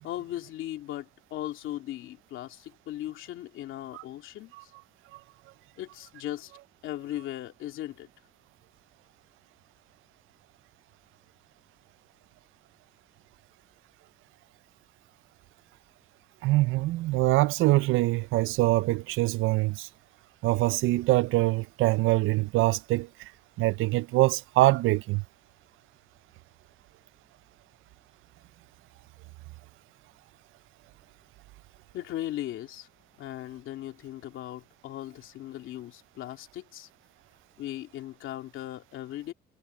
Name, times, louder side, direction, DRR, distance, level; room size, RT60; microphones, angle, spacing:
voice 1, 0.0-4.7 5.8-6.5 6.8-8.1 31.9-32.9 33.2-36.9 37.6-39.3, left 13 dB, 85° left, 2.9 m, -38 dB
voice 2, 16.4-19.9 20.4-23.3 23.6-25.2, right 19 dB, 90° right, 0.5 m, -24 dB
cardioid pair, 90°, 20 cm